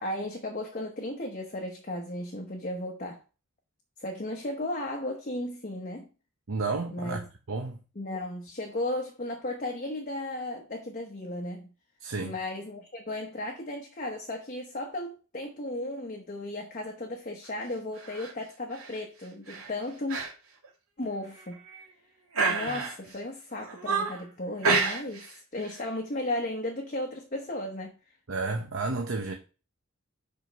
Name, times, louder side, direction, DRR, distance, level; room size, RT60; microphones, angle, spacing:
voice 1, 0.0-3.2 4.0-6.1 6.9-7.2 8.0-11.7 12.2-20.2 21.0-21.6 22.5-25.3 25.5-28.0, left 1 dB, 35° left, 1.0 m, -35 dB
voice 2, 6.5-7.8 12.0-12.3 28.3-29.3, right 3 dB, 60° right, 0.8 m, -31 dB
sound 1, 18.0-18.3 18.7-19.0 19.5-19.7 20.1-20.3 20.6-20.7 21.4-21.9 22.3-23.1 23.6-24.2 24.6-25.3 25.6-25.8, right 4 dB, 80° right, 2.3 m, -29 dB
5.1 x 4.6 x 5.5 m
head